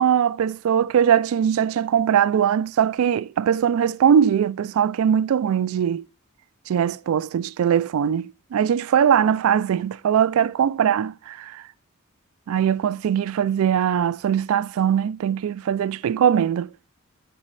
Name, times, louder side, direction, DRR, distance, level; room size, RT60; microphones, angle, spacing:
voice 1, 0.0-6.0 6.7-11.6 12.5-16.7, right 8 dB, 75° right, 0.3 m, -21 dB
10.0 x 4.1 x 3.2 m
head